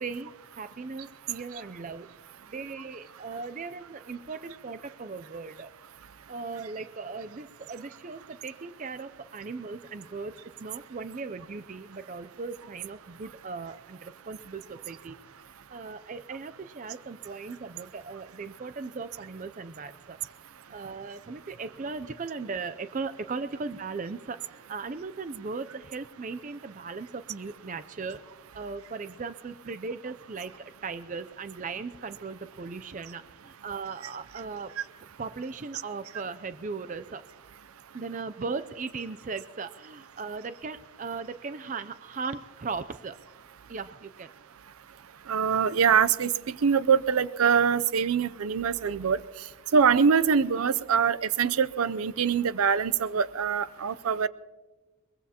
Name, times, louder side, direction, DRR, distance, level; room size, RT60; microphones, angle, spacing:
voice 1, 0.0-2.1 2.5-5.7 6.3-15.2 15.7-20.2 20.7-28.2 28.5-34.7 35.2-37.2 37.9-43.2 43.7-44.3, right 4 dB, 35° right, 12 dB, 0.4 m, -38 dB
voice 2, 45.3-49.2 49.7-54.3, right 6 dB, 90° right, 17 dB, 0.5 m, -24 dB
23.0 x 21.0 x 2.9 m, 1.3 s
head